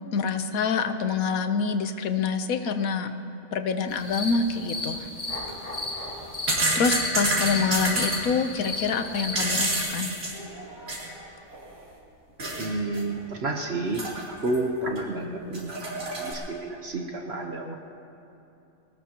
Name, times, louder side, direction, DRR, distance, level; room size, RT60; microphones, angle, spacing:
voice 1, 0.1-3.1 3.5-5.1 6.7-10.2, left 5 dB, 85° left, 8 dB, 1.3 m, -26 dB
sound 1, 3.9-9.8, left 2 dB, 40° left, 2.5 m, -35 dB
sound 2, 5.3-5.5 6.1-8.2 9.1-11.2 11.5-11.6 12.4-12.7 12.9-13.0 13.9-14.6 15.0-15.1 15.5-16.3, right 1 dB, 90° right, 3.9 m, -28 dB
voice 2, 12.6-17.7, right 2 dB, 50° right, 2 dB, 1.3 m, -31 dB
23.5 x 18.5 x 3.0 m, 2.8 s
omnidirectional pair, 1.4 m